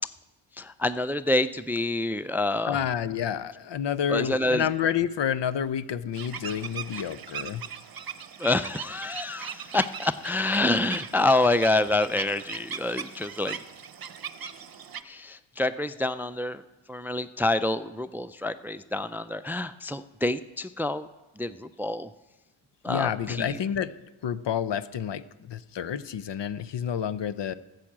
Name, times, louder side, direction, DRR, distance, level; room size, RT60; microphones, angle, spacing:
voice 1, 0.6-2.8 4.1-4.6 8.4-13.6 15.1-16.6 16.9-21.1 21.4-22.1 22.8-23.6, left 2 dB, 5° right, 13 dB, 0.4 m, -27 dB
voice 2, 2.7-7.6 22.9-23.9 24.2-27.5, left 8 dB, 65° left, 15 dB, 0.7 m, -29 dB
sound 1, 6.1-15.0, right 7 dB, 50° right, 0.8 m, -39 dB
13.0 x 7.9 x 7.3 m, 1.1 s
cardioid pair, 60°, 47 cm